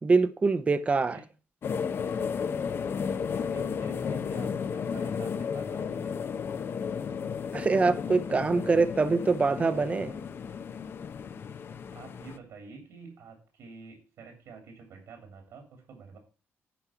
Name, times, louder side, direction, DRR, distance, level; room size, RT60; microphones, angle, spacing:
voice 1, 0.0-1.2 7.5-10.2, right 4 dB, 25° right, 0.7 m, -24 dB
sound 1, 1.6-12.4, left 6 dB, 50° left, 0.6 m, -33 dB
voice 2, 3.4-6.2 11.9-16.2, right 5 dB, 80° right, 2.9 m, -48 dB
10.0 x 4.7 x 5.6 m
cardioid pair, 110°, 5 cm